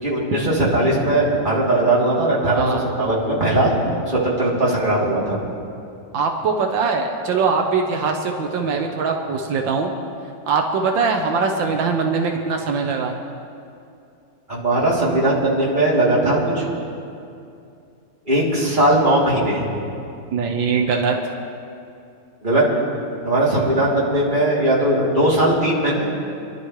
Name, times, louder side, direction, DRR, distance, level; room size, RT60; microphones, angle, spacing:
voice 1, 0.0-3.7 4.1-5.4 14.5-16.6 18.3-19.7 22.4-22.6 23.2-26.1, right 1 dB, 25° right, -7 dB, 3.2 m, -19 dB
voice 2, 6.1-9.9 10.5-13.2 20.3-21.2, right 5 dB, 85° right, 3 dB, 1.7 m, -21 dB
27.5 x 11.5 x 3.2 m, 2.5 s
omnidirectional pair, 2.0 m